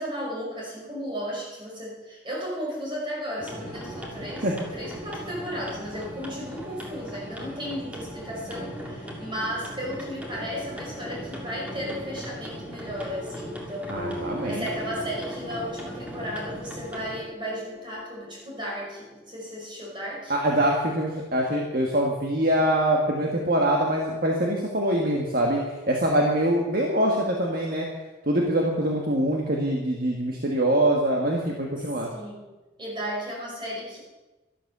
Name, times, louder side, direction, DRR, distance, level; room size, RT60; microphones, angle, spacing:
voice 1, 0.0-20.3 32.1-32.5 32.8-34.0, equal, 25° right, -4 dB, 5.4 m, -34 dB
sound 1, 3.4-17.2, equal, 5° right, 2.2 m, -39 dB
Piano, 12.9-20.0, equal, 20° left, 4.2 m, -41 dB
voice 2, 13.9-14.7 20.3-27.9 28.2-32.1, right 1 dB, 45° right, 0 dB, 1.6 m, -24 dB
12.5 x 12.0 x 6.8 m, 1.2 s
head